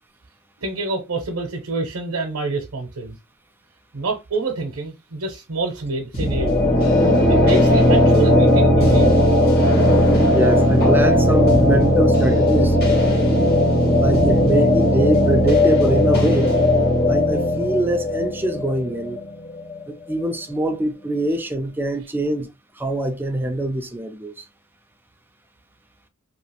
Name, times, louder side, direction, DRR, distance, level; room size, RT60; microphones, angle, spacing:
voice 1, 0.6-3.2 3.9-6.7 7.3-9.2, right 2 dB, 65° right, 0.7 m, -27 dB
sound 1, 6.1-19.8, left 1 dB, 45° left, 1.2 m, -17 dB
voice 2, 10.3-12.8 14.0-16.6 17.1-19.2 19.9-22.5 22.8-24.5, right 1 dB, 10° right, 0.4 m, -23 dB
2.9 x 2.4 x 2.8 m
head